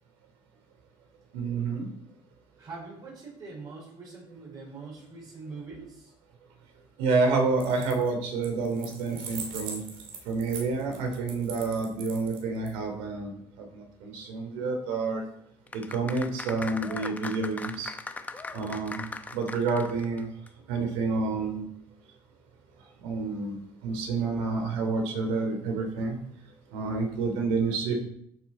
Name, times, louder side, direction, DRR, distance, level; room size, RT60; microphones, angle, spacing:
voice 1, 1.3-1.9 7.0-9.8 10.2-13.3 13.7-15.2 15.7-17.9 18.5-19.1 19.3-20.3 20.7-21.6 23.0-23.6 23.8-26.2 26.7-27.9, right 4 dB, 85° right, 3 dB, 2.8 m, -29 dB
voice 2, 2.6-6.1, right 4 dB, 40° right, -3 dB, 4.0 m, -43 dB
sound 1, 7.5-8.1 8.4-12.7, right 5 dB, 65° right, 2.6 m, -41 dB
sound 2, 15.7-20.2 20.5-20.6, left 3 dB, 15° left, 0.7 m, -38 dB
12.5 x 6.4 x 4.2 m, 0.71 s
cardioid pair, 130°, 10 cm